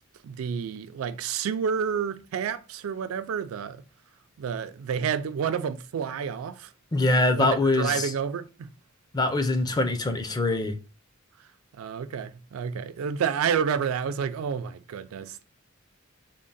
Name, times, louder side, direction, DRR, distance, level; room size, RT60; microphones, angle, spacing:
voice 1, 0.2-3.8 4.4-6.7 7.3-8.7 11.8-15.4, right 7 dB, 75° right, 0.3 m, -29 dB
voice 2, 6.9-8.1 9.1-10.8, left 2 dB, 20° left, 0.4 m, -23 dB
3.6 x 2.1 x 3.9 m
head